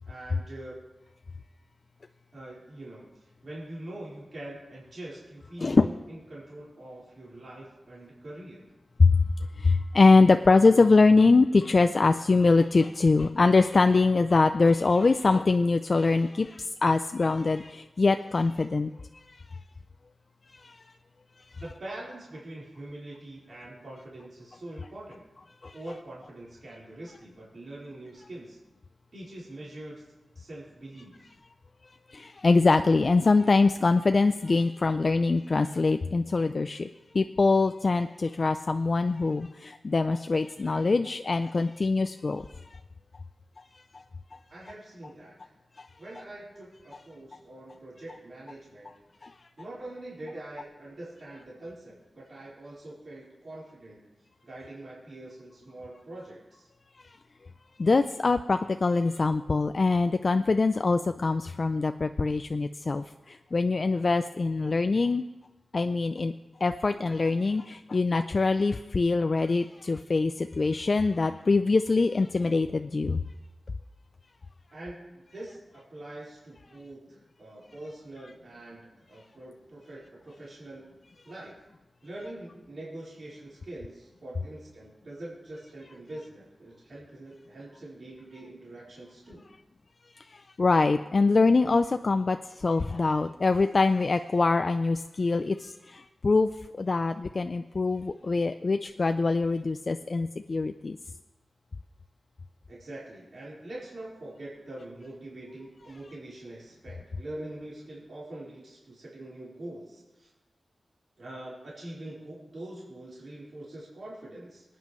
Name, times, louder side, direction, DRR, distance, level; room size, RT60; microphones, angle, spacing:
voice 1, 0.1-0.8 2.3-3.1 3.4-8.7 21.6-25.2 25.7-28.6 29.1-30.0 30.3-31.3 44.5-45.4 46.0-48.9 49.6-54.1 54.4-56.7 74.7-80.9 81.2-81.5 82.0-89.5 102.7-110.3 111.2-114.6, right 1 dB, 60° right, -7 dB, 4.3 m, -44 dB
voice 2, 9.6-18.9 20.6-20.7 25.6-25.7 32.1-36.9 37.1-42.5 43.9-44.0 44.3-44.4 45.8-45.9 49.2-49.3 57.8-65.2 65.7-66.3 66.6-73.2 90.2-96.5 96.8-101.0, left 3 dB, 45° left, 8 dB, 0.4 m, -23 dB
24.0 x 9.4 x 3.1 m, 1.1 s
wide cardioid pair, 100°, 0 cm